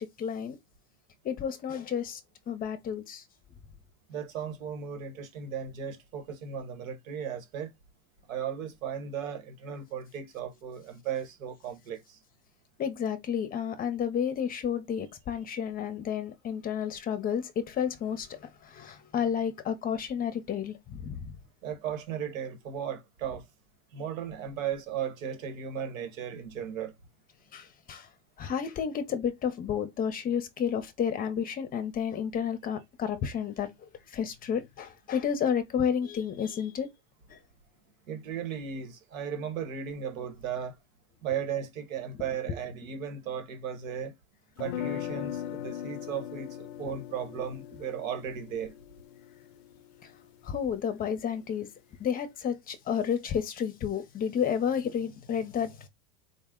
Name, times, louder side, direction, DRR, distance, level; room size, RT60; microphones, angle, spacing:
voice 1, 0.2-0.6 1.2-2.2 2.5-3.2 12.8-21.3 27.5-28.1 28.4-33.7 34.1-36.9 37.3-37.4 42.5-42.6 50.5-51.7 52.0-55.9, left 8 dB, 25° left, 0.6 m, -31 dB
voice 2, 4.1-7.7 8.3-12.2 21.6-23.4 23.9-26.9 38.1-40.8 41.2-44.1 44.6-48.7, right 8 dB, 90° right, 1.2 m, -36 dB
sound 1, 44.6-50.6, left 10 dB, 75° left, 0.5 m, -39 dB
4.0 x 2.1 x 3.6 m
supercardioid pair, 130°, 39 cm